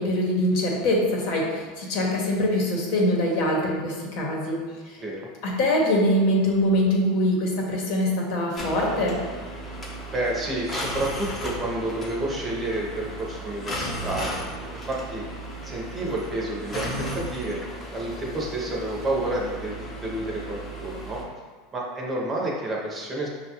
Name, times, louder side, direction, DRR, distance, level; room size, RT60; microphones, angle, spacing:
voice 1, 0.0-4.6 4.9-5.0 5.4-9.2, left 1 dB, 60° left, -2 dB, 0.9 m, -23 dB
sound 1, 8.5-21.2, right 1 dB, 20° left, 0.7 m, -35 dB
voice 2, 10.1-14.4 14.7-15.2 15.6-17.6 17.9-21.2 21.7-23.3, right 1 dB, 20° right, -3 dB, 0.7 m, -30 dB
5.5 x 2.3 x 2.9 m, 1.4 s
supercardioid pair, 140°, 0 cm